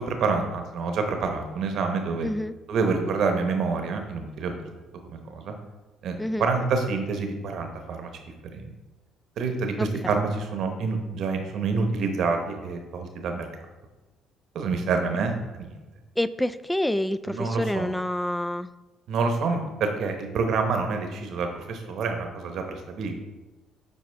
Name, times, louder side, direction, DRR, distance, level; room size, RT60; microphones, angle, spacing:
voice 1, 0.1-2.3 2.7-4.7 5.1-5.5 6.0-8.2 8.5-8.7 9.4-13.5 14.5-15.7 17.3-17.9 19.1-23.2, right 4 dB, 65° right, 5 dB, 1.0 m, -27 dB
voice 2, 2.2-2.5 6.2-6.5 9.8-10.2 16.2-18.7, left 1 dB, 5° left, 14 dB, 0.3 m, -28 dB
8.4 x 4.2 x 3.4 m, 1.2 s
supercardioid pair, 75°, 0 cm